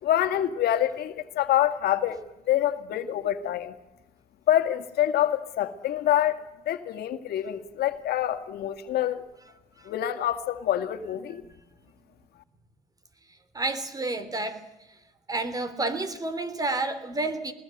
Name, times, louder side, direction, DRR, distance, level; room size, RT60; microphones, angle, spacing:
voice 1, 0.0-2.2 2.5-3.7 4.5-9.2 9.8-11.4, left 11 dB, 70° left, 8 dB, 2.0 m, -26 dB
voice 2, 13.5-14.6 15.3-17.5, right 2 dB, 20° right, 12 dB, 3.1 m, -30 dB
21.0 x 20.5 x 8.0 m, 0.97 s
cardioid pair, 110°, 17 cm